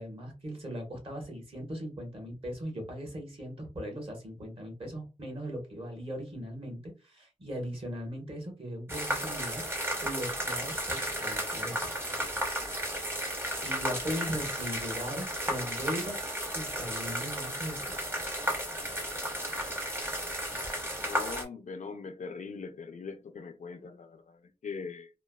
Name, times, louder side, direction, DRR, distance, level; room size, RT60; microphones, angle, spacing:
voice 1, 0.0-9.6 10.0-12.2 13.6-16.2 16.5-18.0, equal, 45° right, 1.2 m, -39 dB
sound 1, 8.9-21.4, equal, 15° right, 0.8 m, -34 dB
voice 2, 21.0-25.1, left 4 dB, 70° left, 0.4 m, -41 dB
3.0 x 2.1 x 2.2 m
wide cardioid pair, 75°, 13 cm